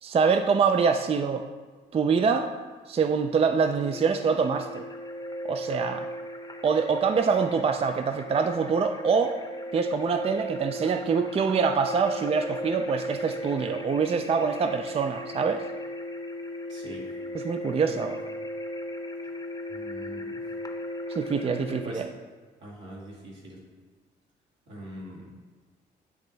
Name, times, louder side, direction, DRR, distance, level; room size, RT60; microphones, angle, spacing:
voice 1, 0.0-1.4 1.9-2.5 2.9-4.9 5.4-6.1 6.6-9.4 9.7-15.7 17.3-18.2 21.1-22.1, right 5 dB, 30° right, 7 dB, 0.4 m, -25 dB
sound 1, 3.9-21.9, equal, 20° left, 0.8 m, -37 dB
voice 2, 16.7-17.1 17.8-18.1 19.7-20.4 21.8-22.1 22.6-23.6 24.7-25.3, right 1 dB, 80° right, -5 dB, 2.0 m, -42 dB
9.4 x 3.2 x 4.0 m, 1.4 s
cardioid pair, 70°, 19 cm